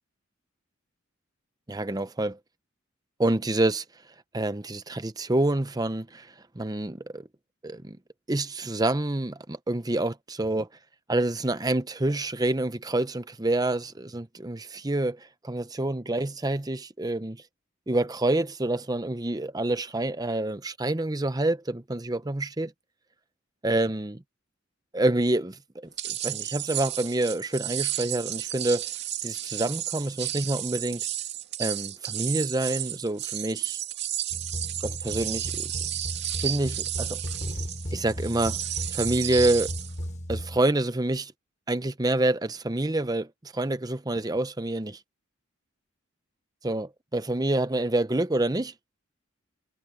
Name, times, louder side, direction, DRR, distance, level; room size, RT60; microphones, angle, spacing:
voice 1, 1.7-2.4 3.2-3.8 4.3-6.3 6.5-7.3 7.6-8.0 8.3-10.7 11.1-17.4 17.9-22.7 23.6-24.2 24.9-28.8 29.2-31.1 31.6-33.8 34.8-35.7 36.4-37.2 37.9-38.6 38.9-39.7 40.3-41.3 41.7-45.0 46.6-48.7, right 2 dB, 20° right, 0.8 m, -27 dB
sound 1, 26.0-40.0, right 12 dB, 55° right, 2.5 m, -33 dB
sound 2, 34.3-40.6, equal, 35° left, 7.8 m, -36 dB
head